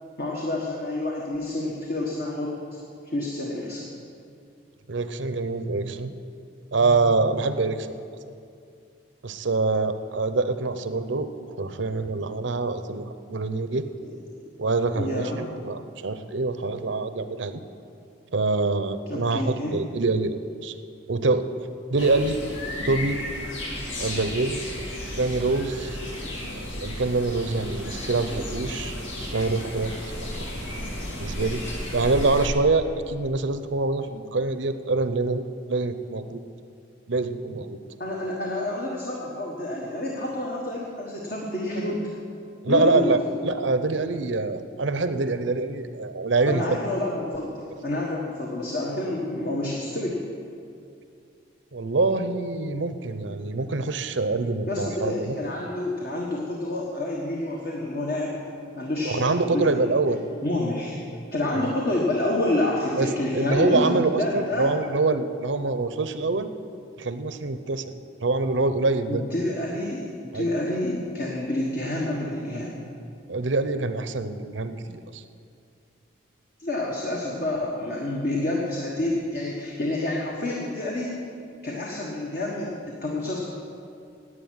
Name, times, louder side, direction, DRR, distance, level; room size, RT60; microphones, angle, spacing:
voice 1, 0.2-2.6 3.0-3.8 14.0-14.1 14.9-15.4 19.1-19.7 38.0-42.0 42.7-43.1 46.5-50.3 54.7-58.3 58.7-59.7 60.4-61.0 61.3-64.7 69.1-72.8 76.6-81.2 81.6-83.4, left 1 dB, 50° left, -3 dB, 1.5 m, -28 dB
voice 2, 4.9-6.1 6.7-7.9 9.2-13.9 14.6-17.6 18.3-20.7 21.1-21.5 21.9-22.4 22.8-23.2 24.0-24.6 25.2-26.0 26.5-30.3 31.2-31.6 31.9-36.4 37.1-37.8 42.6-43.2 43.4-46.8 51.7-55.3 59.0-60.2 61.5-61.7 63.0-63.1 63.3-66.5 67.0-67.8 68.2-69.2 70.3-70.5 73.3-75.2, right 3 dB, 70° right, 10 dB, 0.7 m, -25 dB
sound 1, 22.0-32.5, left 1 dB, 80° left, 2.4 m, -34 dB
11.0 x 8.7 x 9.5 m, 2.4 s
head